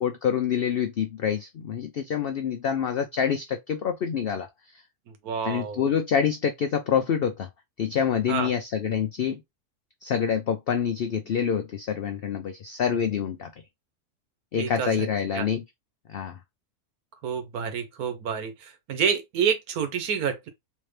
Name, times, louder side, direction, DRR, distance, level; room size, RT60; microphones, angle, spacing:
voice 1, 0.0-4.5 5.4-7.5 7.8-9.4 10.0-13.5 14.5-15.6 16.1-16.4, left 7 dB, 75° left, 0.5 m, -26 dB
voice 2, 5.2-5.9 8.3-8.5 14.6-15.1 15.3-15.5 17.2-20.5, right 7 dB, 75° right, 1.4 m, -28 dB
3.5 x 2.9 x 3.2 m
omnidirectional pair, 1.6 m